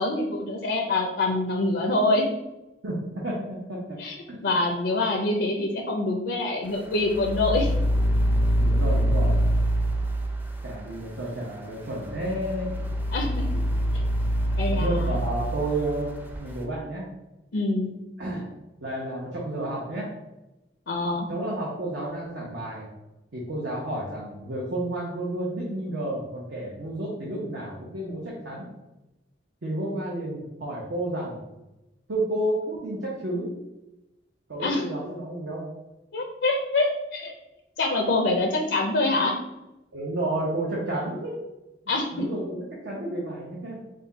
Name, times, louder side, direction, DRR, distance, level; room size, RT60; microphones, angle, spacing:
voice 1, 0.0-2.3 4.0-4.1 4.4-7.7 13.1-13.5 14.6-15.1 17.5-17.9 20.9-21.3 34.6-34.8 36.1-37.3 37.8-39.4 41.9-42.3, left 2 dB, 85° left, 1 dB, 0.6 m, -25 dB
voice 2, 2.8-4.0 4.3-4.4 8.6-9.4 10.6-12.8 14.7-16.1 16.4-17.1 18.2-18.4 18.8-20.1 21.1-22.9 23.3-28.7 29.6-31.4 32.1-33.5 34.5-35.7 39.9-41.4 42.1-43.8, right 1 dB, 80° right, -5 dB, 1.0 m, -31 dB
sound 1, 7.0-10.7 12.0-16.4, equal, 10° right, 0.5 m, -25 dB
5.1 x 2.3 x 3.9 m, 0.98 s
head